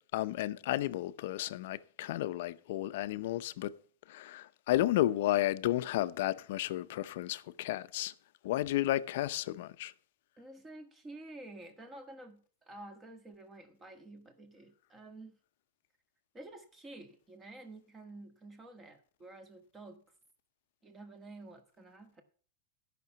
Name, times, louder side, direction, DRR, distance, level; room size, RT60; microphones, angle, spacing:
voice 1, 0.1-3.7 4.1-8.1 8.4-9.9, left 14 dB, 65° left, 0.6 m, -32 dB
voice 2, 10.4-15.4 16.3-20.0 20.8-22.2, right 2 dB, 15° right, 1.7 m, -50 dB
12.0 x 6.0 x 5.8 m
supercardioid pair, 145°, 0 cm